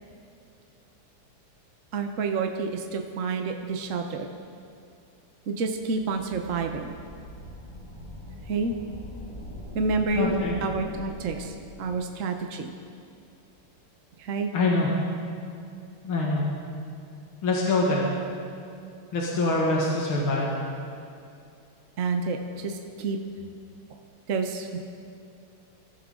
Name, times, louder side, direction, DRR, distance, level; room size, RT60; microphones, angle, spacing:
voice 1, 1.9-4.3 5.5-6.9 8.5-8.7 9.7-12.7 14.2-14.5 22.0-23.2 24.3-24.8, right 4 dB, 55° right, 4 dB, 0.9 m, -29 dB
sound 1, 5.8-12.2, equal, 30° left, 4.9 m, -42 dB
voice 2, 10.2-10.6 14.5-14.9 16.0-16.5 17.4-18.1 19.1-20.5, left 2 dB, 70° left, -4 dB, 2.7 m, -24 dB
24.5 x 13.5 x 3.8 m, 2.5 s
omnidirectional pair, 2.4 m